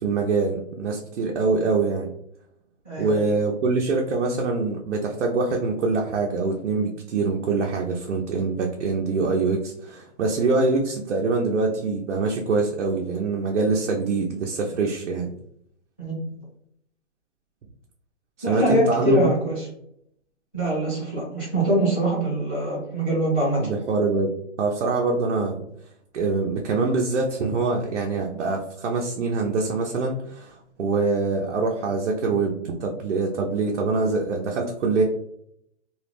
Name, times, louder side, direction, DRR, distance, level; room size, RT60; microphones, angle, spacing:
voice 1, 0.0-2.1 3.0-15.3 18.5-19.3 23.6-24.3 24.6-25.6 26.1-35.0, right 3 dB, 75° right, 0 dB, 0.5 m, -24 dB
voice 2, 2.8-3.2 16.0-16.3 18.4-19.6 20.5-23.6, right 1 dB, 10° left, -15 dB, 0.5 m, -23 dB
2.3 x 2.0 x 3.2 m, 0.72 s
hypercardioid pair, 180°, 35 cm